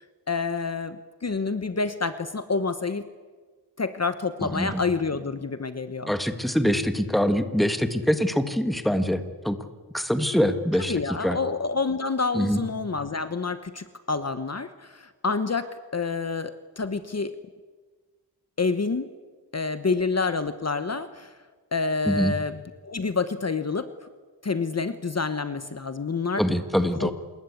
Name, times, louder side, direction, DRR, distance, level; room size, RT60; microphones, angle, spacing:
voice 1, 0.3-3.0 3.8-6.1 10.8-17.3 18.6-19.1 19.5-21.3 21.7-23.9 24.4-26.4 27.0-27.1, left 4 dB, 40° left, 11 dB, 1.1 m, -28 dB
voice 2, 4.4-4.8 6.1-9.6 9.9-11.4 12.3-12.6 22.0-22.3 26.4-27.1, equal, ahead, 9 dB, 1.7 m, -24 dB
27.0 x 21.0 x 8.5 m, 1.4 s
wide cardioid pair, 125°, 41 cm